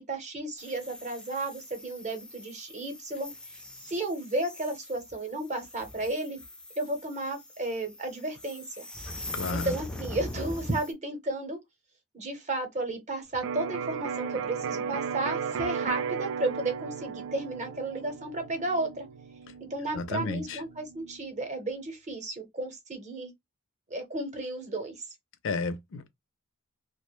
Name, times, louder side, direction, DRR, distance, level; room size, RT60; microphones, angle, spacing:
voice 1, 0.0-3.3 3.9-6.4 6.8-8.8 9.5-11.6 12.1-19.1 19.7-23.3 23.9-24.9, right 2 dB, 35° right, 0.8 m, -33 dB
sound 1, 0.6-10.9, left 1 dB, 5° left, 0.4 m, -42 dB
voice 2, 9.3-9.7 19.9-20.6 25.4-26.1, left 3 dB, 65° left, 0.5 m, -32 dB
Electric guitar, 13.4-21.2, right 6 dB, 60° right, 0.3 m, -35 dB
2.4 x 2.1 x 3.0 m
head